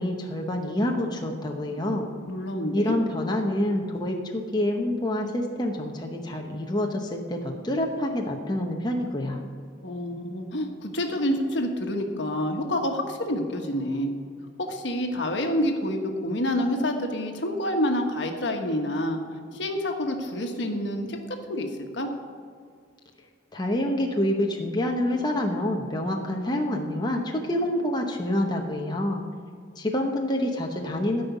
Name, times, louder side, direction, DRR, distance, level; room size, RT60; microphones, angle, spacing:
voice 1, 0.0-2.1 2.7-9.4 23.5-29.2 29.8-31.2, left 1 dB, 20° left, 1 dB, 0.9 m, -27 dB
voice 2, 2.3-3.0 9.8-14.1 14.6-19.2 19.5-21.2 21.5-21.7 21.9-22.1, left 1 dB, 65° left, 4 dB, 1.3 m, -28 dB
13.5 x 5.5 x 8.1 m, 2.1 s
head